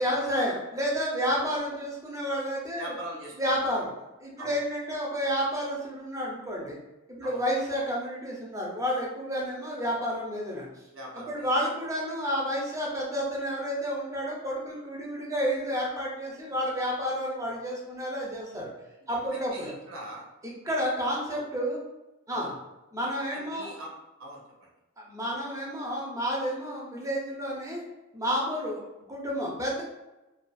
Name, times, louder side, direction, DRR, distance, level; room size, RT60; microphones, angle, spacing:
voice 1, 0.0-2.9 3.4-3.9 4.2-6.8 7.1-10.7 11.2-18.7 19.1-19.7 20.4-21.8 22.3-22.5 22.9-23.7 25.1-27.8 28.1-29.8, equal, 15° right, -3 dB, 0.5 m, -30 dB
voice 2, 2.7-3.7 4.4-4.6 7.2-7.4 10.9-11.5 19.1-20.2 21.1-21.5 22.3-22.5 23.3-23.9 24.2-24.7, right 1 dB, 65° right, -2 dB, 0.7 m, -42 dB
2.5 x 2.3 x 2.3 m, 1.0 s
head